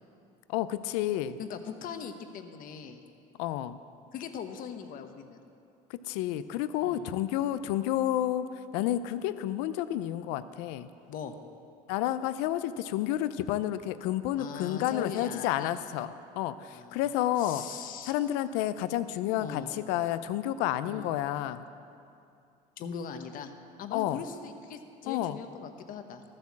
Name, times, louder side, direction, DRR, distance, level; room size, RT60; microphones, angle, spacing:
voice 1, 0.5-1.4 3.4-3.8 5.9-8.5 8.7-10.9 11.9-17.6 18.1-21.6 23.9-24.2 25.1-25.4, left 12 dB, 85° left, 13 dB, 0.5 m, -30 dB
voice 2, 1.4-3.0 4.1-5.4 6.8-7.1 11.1-11.4 14.4-15.7 16.7-17.0 17.4-18.1 19.4-19.7 20.8-21.1 22.8-23.5 23.8-26.2, left 7 dB, 60° left, 7 dB, 1.1 m, -40 dB
13.5 x 7.8 x 7.3 m, 2.5 s
supercardioid pair, 95°, 16 cm